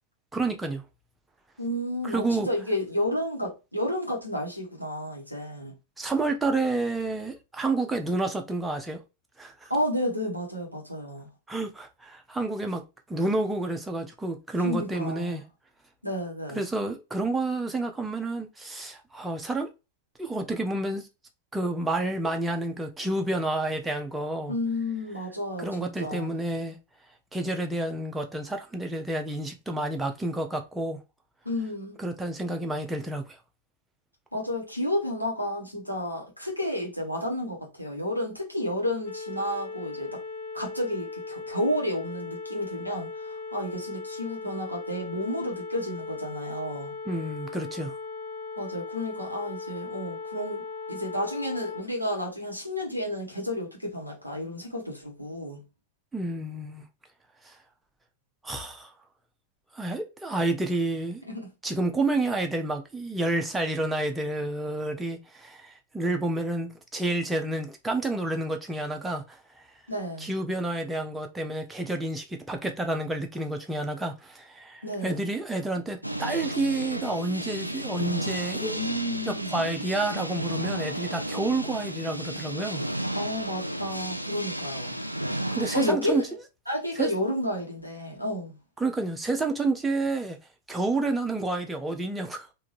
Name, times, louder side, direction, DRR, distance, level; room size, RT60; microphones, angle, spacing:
voice 1, 0.3-0.8 2.0-2.5 6.0-9.0 9.4-9.7 11.5-12.8 13.1-15.4 16.5-19.7 20.2-21.0 21.5-24.5 25.6-26.8 27.3-31.0 32.0-33.4 47.1-47.9 56.1-56.8 57.4-57.6 58.4-58.9 59.7-61.2 61.6-69.4 70.2-78.8 79.3-82.8 85.5-86.2 87.0-87.1 88.8-90.4 90.7-92.5, right 2 dB, 10° right, 0.8 m, -29 dB
voice 2, 1.6-5.8 9.7-11.3 14.6-15.4 16.0-16.6 24.5-26.4 31.4-32.0 34.3-40.2 40.5-46.9 48.6-55.6 61.3-61.5 69.9-70.3 74.8-75.2 78.6-79.5 83.1-85.0 85.7-86.2 86.7-88.6, left 1 dB, 90° left, 1.2 m, -31 dB
sound 1, 39.0-51.8, left 4 dB, 55° left, 1.5 m, -38 dB
sound 2, 76.0-85.9, right 1 dB, 90° right, 0.4 m, -33 dB
3.6 x 2.7 x 2.9 m
figure-of-eight pair, 90°, 0 cm